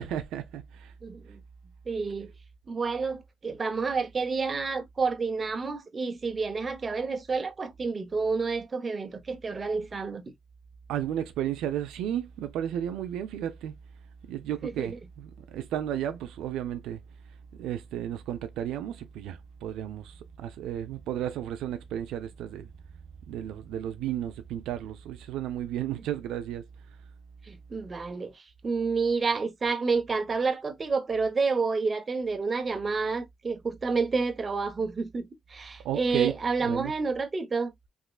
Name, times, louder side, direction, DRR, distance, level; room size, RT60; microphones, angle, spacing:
voice 1, 0.0-0.9 10.9-13.7 14.3-17.0 17.6-22.7 23.3-26.7 35.8-36.9, right 11 dB, 90° right, 0.4 m, -33 dB
voice 2, 1.0-1.4 1.9-2.3 2.7-10.2 14.6-15.0 27.4-37.7, right 4 dB, 30° right, 0.8 m, -29 dB
3.5 x 3.0 x 2.3 m
cardioid pair, 90°, 0 cm